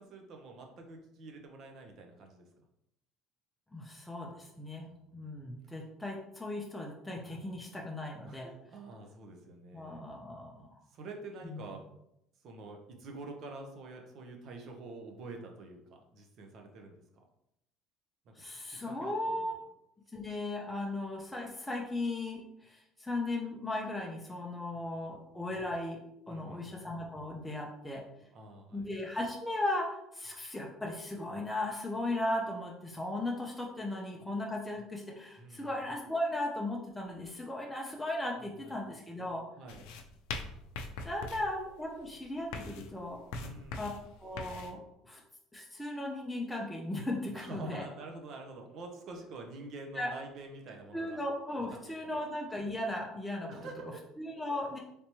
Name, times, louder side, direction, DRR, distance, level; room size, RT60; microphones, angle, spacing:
voice 1, 0.0-2.5 4.3-5.4 7.2-7.7 8.2-10.0 10.9-11.8 12.4-17.0 18.3-19.4 25.0-25.1 26.3-26.8 28.3-28.9 35.4-35.8 38.6-38.8 39.6-39.9 43.3-44.1 47.3-51.2 51.6-52.1 53.5-54.0, right 3 dB, 50° right, 3 dB, 0.7 m, -47 dB
voice 2, 3.7-4.8 5.1-8.5 9.7-10.8 11.4-11.6 18.4-19.5 20.1-26.0 26.3-28.0 28.7-39.4 41.0-43.2 43.8-43.9 44.2-45.2 45.5-47.9 50.0-50.1 50.9-53.6 54.2-54.8, left 1 dB, 5° left, -2 dB, 0.5 m, -37 dB
sound 1, 39.7-44.7, left 3 dB, 85° left, 0.4 m, -43 dB
3.4 x 2.9 x 2.9 m, 0.80 s
cardioid pair, 135°, 0 cm